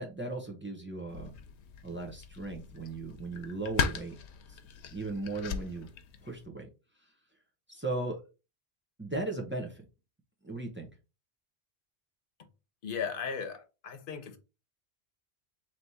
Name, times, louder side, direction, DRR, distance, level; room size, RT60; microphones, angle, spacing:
voice 1, 0.0-1.3 1.8-4.2 4.5-4.6 4.9-5.9 6.2-6.7 7.7-8.2 9.0-9.8 10.4-10.9, right 2 dB, 10° right, 0.8 m, -37 dB
sound 1, 1.1-6.5, left 7 dB, 90° left, 0.9 m, -38 dB
voice 2, 12.8-14.4, left 6 dB, 55° left, 0.9 m, -36 dB
3.4 x 3.0 x 4.1 m
omnidirectional pair, 1.1 m